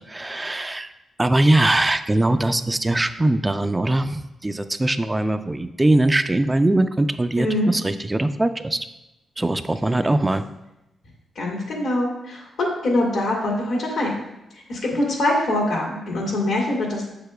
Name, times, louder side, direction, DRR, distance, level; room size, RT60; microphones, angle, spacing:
voice 1, 0.1-0.9 1.2-8.9 9.4-10.4, right 1 dB, 20° right, 10 dB, 0.3 m, -21 dB
voice 2, 7.4-7.7 10.0-10.2 11.4-14.2 14.7-17.0, left 1 dB, 80° left, -2 dB, 2.1 m, -23 dB
7.5 x 6.7 x 2.2 m, 0.92 s
cardioid pair, 70°, 0 cm